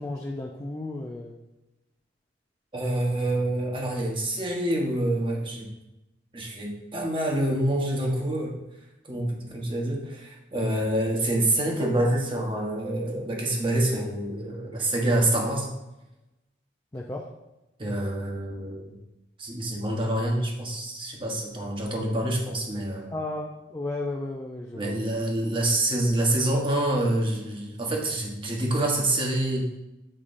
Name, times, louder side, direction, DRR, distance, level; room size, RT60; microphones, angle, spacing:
voice 1, 0.0-1.4 16.9-17.3 23.1-25.0, left 2 dB, 20° left, -1 dB, 0.5 m, -34 dB
voice 2, 2.7-5.7 6.3-8.6 9.1-15.7 17.8-18.9 19.4-23.1 24.8-29.7, right 1 dB, 30° right, 0 dB, 1.1 m, -27 dB
8.8 x 4.9 x 2.6 m, 0.98 s
head